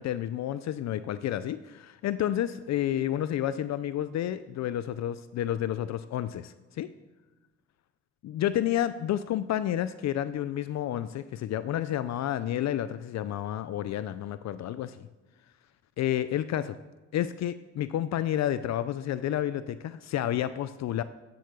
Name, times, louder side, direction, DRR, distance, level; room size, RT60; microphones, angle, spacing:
voice 1, 0.0-6.9 8.2-15.0 16.0-16.8 17.1-21.0, left 11 dB, 60° left, 14 dB, 0.5 m, -30 dB
9.6 x 7.9 x 6.7 m, 1.1 s
cardioid pair, 90°, 30 cm